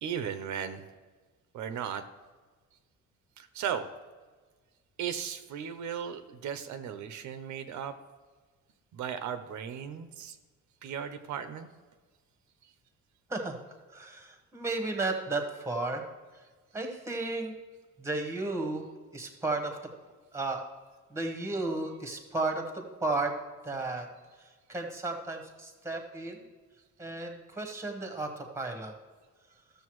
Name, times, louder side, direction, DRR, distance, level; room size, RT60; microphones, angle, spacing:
voice 1, 0.0-0.8 1.5-2.0 3.4-3.8 5.0-7.9 8.9-10.4 10.8-11.7, right 8 dB, 70° right, 10 dB, 0.7 m, -36 dB
voice 2, 13.9-16.0 16.7-17.5 18.0-18.9 19.1-19.8 20.3-20.6 21.1-23.4 23.6-24.1 24.4-26.4 27.0-28.9, right 2 dB, 10° right, 4 dB, 1.0 m, -33 dB
14.0 x 6.7 x 3.1 m, 1.4 s
cardioid pair, 175°, 31 cm